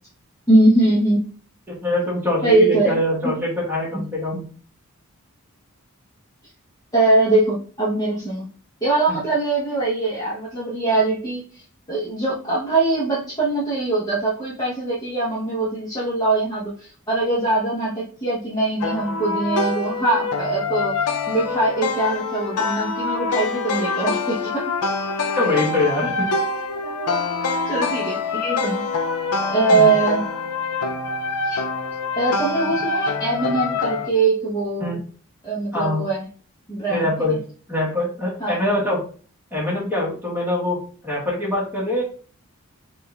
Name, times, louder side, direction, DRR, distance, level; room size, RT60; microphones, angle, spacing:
voice 1, 0.5-1.2 2.4-3.0 6.9-8.5 8.8-11.6 11.9-21.0 21.3-24.7 26.8-28.8 29.5-30.3 31.4-31.6 32.2-35.0 35.4-36.3 36.7-37.4 38.4-38.6, right 2 dB, 15° left, -7 dB, 1.0 m, -22 dB
voice 2, 1.8-4.4 25.3-26.3 29.7-30.0 34.8-35.0 35.7-36.0 36.9-37.4 37.7-39.0 39.5-40.8 41.0-42.0, left 1 dB, 10° right, -5 dB, 1.5 m, -23 dB
sound 1, 18.8-34.1, left 4 dB, 85° left, 0.5 m, -25 dB
4.2 x 2.5 x 3.4 m, 0.41 s
head